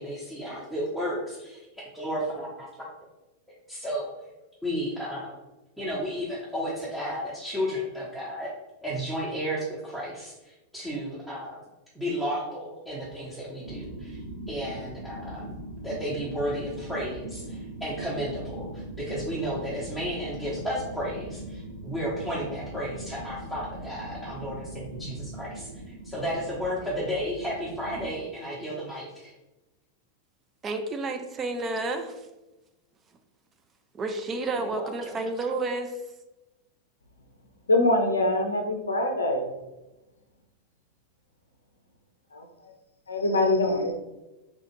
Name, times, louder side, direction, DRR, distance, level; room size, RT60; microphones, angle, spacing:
voice 1, 0.0-1.7 1.9-2.9 3.7-4.1 4.6-5.4 5.8-8.5 8.8-11.6 11.9-14.2 14.5-15.6 15.8-25.7 26.0-29.3 34.6-35.2, equal, ahead, -8 dB, 0.7 m, -33 dB
sound 1, 13.6-28.1, right 1 dB, 80° right, 0.8 m, -40 dB
voice 2, 30.6-32.2 33.9-36.0, right 2 dB, 25° right, 6 dB, 0.3 m, -30 dB
voice 3, 37.7-39.5 43.1-43.9, left 2 dB, 75° left, 4 dB, 0.5 m, -23 dB
3.6 x 2.4 x 3.0 m, 1.0 s
figure-of-eight pair, 90°, 0 cm